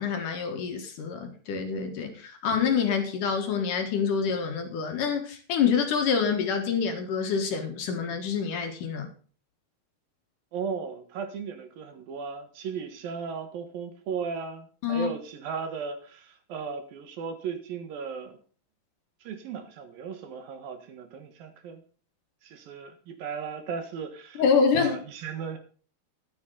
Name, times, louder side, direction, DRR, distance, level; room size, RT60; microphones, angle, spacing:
voice 1, 0.0-9.1 14.8-15.1 24.4-25.0, left 6 dB, 60° left, 2.7 m, -26 dB
voice 2, 10.5-18.4 19.2-21.8 22.4-24.4 24.8-25.6, right 6 dB, 65° right, 3.0 m, -36 dB
14.0 x 10.5 x 3.9 m
omnidirectional pair, 4.6 m